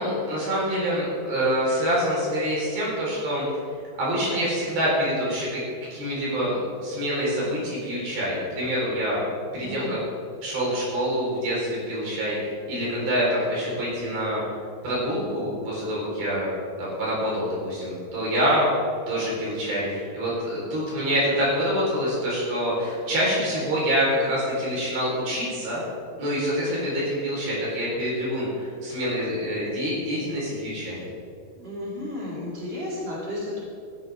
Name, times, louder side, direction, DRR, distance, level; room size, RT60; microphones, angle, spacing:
voice 1, 0.0-3.4 4.0-9.2 9.5-10.0 10.4-14.4 14.8-16.5 16.8-18.6 19.1-25.8 26.2-31.0, equal, 75° right, -6 dB, 6.1 m, -26 dB
voice 2, 9.6-10.0 31.5-33.6, left 1 dB, 15° right, -8 dB, 4.0 m, -33 dB
15.0 x 14.5 x 3.6 m, 2.3 s
omnidirectional pair, 4.3 m